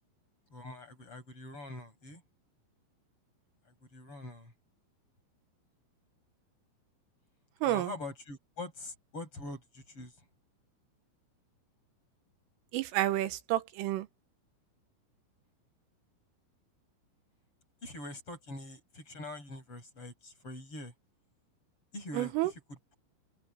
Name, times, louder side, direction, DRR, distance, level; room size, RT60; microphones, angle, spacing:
voice 1, 0.5-2.2 3.7-4.5 7.6-10.1 17.8-20.9 21.9-22.9, left 2 dB, 25° left, 7.9 m, -44 dB
voice 2, 12.7-14.1 22.1-22.5, right 14 dB, 80° right, 3.8 m, -30 dB
open air
omnidirectional pair, 5.9 m